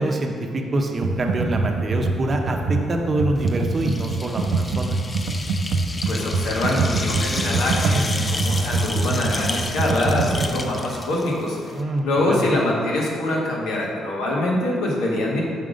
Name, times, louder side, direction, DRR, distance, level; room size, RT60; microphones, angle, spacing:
voice 1, 0.0-5.0 11.7-12.5, right 1 dB, 40° right, 3 dB, 0.7 m, -25 dB
Computer keyboard, 1.0-10.5, right 3 dB, 80° right, 0.4 m, -24 dB
sound 1, 3.4-11.8, left 3 dB, 25° left, 0.4 m, -32 dB
voice 2, 6.0-11.6 12.0-15.4, left 1 dB, 90° left, -3 dB, 1.2 m, -24 dB
5.8 x 3.7 x 5.0 m, 2.3 s
cardioid pair, 90°, 0 cm